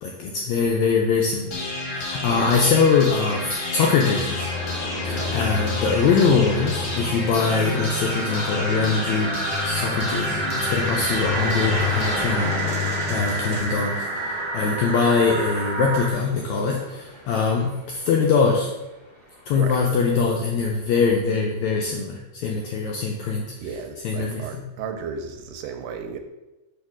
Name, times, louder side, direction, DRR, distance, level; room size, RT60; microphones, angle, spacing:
voice 1, 0.0-1.5 1.9-4.5 5.0-12.5 13.1-18.7 19.5-23.5 24.0-24.4, left 5 dB, 80° left, 0 dB, 1.6 m, -22 dB
sound 1, 1.5-13.5, left 4 dB, 50° left, 1.5 m, -29 dB
sound 2, 1.8-19.5, equal, 30° right, 0.7 m, -36 dB
voice 2, 5.2-5.6 13.2-13.7 19.5-19.8 23.6-26.2, right 6 dB, 85° right, 5 dB, 2.2 m, -35 dB
sound 3, 7.4-16.1, right 2 dB, 55° right, 1.2 m, -29 dB
5.3 x 4.3 x 5.9 m, 1.0 s
omnidirectional pair, 3.9 m